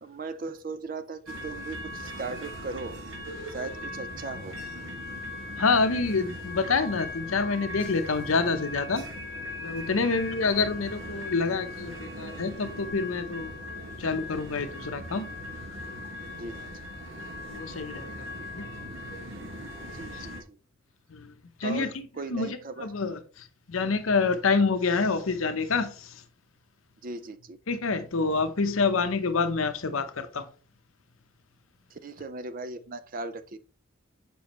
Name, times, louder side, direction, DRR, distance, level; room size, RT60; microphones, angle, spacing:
voice 1, 0.0-3.0 3.5-4.6 10.0-10.4 16.4-16.7 19.9-20.6 21.6-22.9 27.0-27.6 31.9-33.6, right 3 dB, 40° right, 0.5 m, -38 dB
sound 1, 1.3-20.4, left 1 dB, 65° right, 1.4 m, -39 dB
voice 2, 5.6-9.0 9.6-13.6 14.0-15.3 17.5-18.3 18.5-18.7 21.1-21.3 21.6-26.2 27.7-30.5, left 4 dB, 80° left, 0.7 m, -27 dB
7.0 x 5.1 x 3.0 m
head